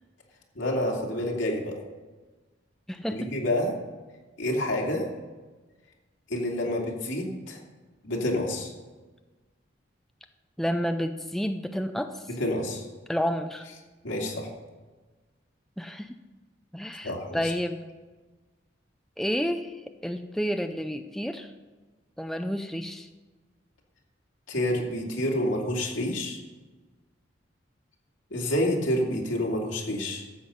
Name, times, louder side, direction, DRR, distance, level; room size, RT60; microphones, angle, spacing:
voice 1, 0.6-1.7 3.1-3.7 4.4-5.1 6.3-7.6 8.0-8.7 12.4-12.9 14.0-14.5 17.0-17.5 24.5-26.4 28.3-30.2, left 1 dB, 85° left, -1 dB, 2.5 m, -28 dB
voice 2, 2.9-3.3 10.6-12.2 13.1-13.7 15.8-16.2 16.7-17.8 19.2-19.8 20.0-21.5 22.2-23.1, equal, ahead, 7 dB, 0.4 m, -30 dB
12.5 x 7.7 x 5.5 m, 1.3 s
head